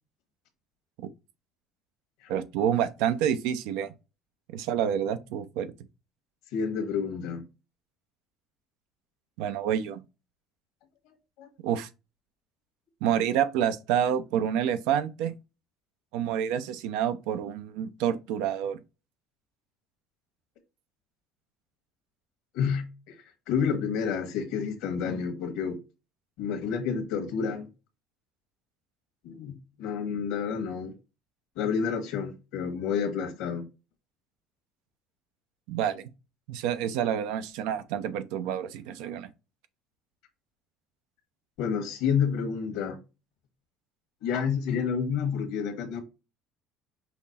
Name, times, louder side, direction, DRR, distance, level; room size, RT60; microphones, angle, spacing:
voice 1, 2.3-3.9 4.5-5.7 9.4-10.0 11.6-11.9 13.0-15.3 16.1-18.8 35.7-36.0 36.5-39.3, right 9 dB, 85° right, 0.6 m, -28 dB
voice 2, 6.5-7.4 11.4-11.5 22.5-23.2 23.5-25.8 26.4-27.7 29.2-30.9 31.6-33.6 41.6-43.0 44.2-46.0, left 6 dB, 80° left, 1.3 m, -29 dB
5.7 x 2.1 x 4.1 m
supercardioid pair, 105°, 0 cm